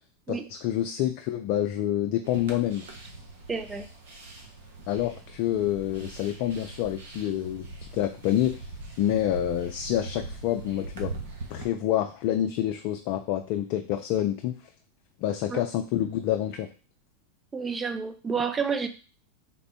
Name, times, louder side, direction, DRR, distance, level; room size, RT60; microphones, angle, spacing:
voice 1, 0.3-2.9 4.9-8.7 9.0-11.1 11.5-14.5 15.2-16.7, left 12 dB, 55° left, 5 dB, 0.3 m, -27 dB
sound 1, 2.2-11.6, right 3 dB, 65° right, 0.9 m, -41 dB
voice 2, 3.5-3.9 15.5-15.6 17.5-18.9, right 5 dB, 15° right, 9 dB, 0.5 m, -29 dB
3.6 x 2.1 x 4.3 m, 0.36 s
hypercardioid pair, 95°, 0 cm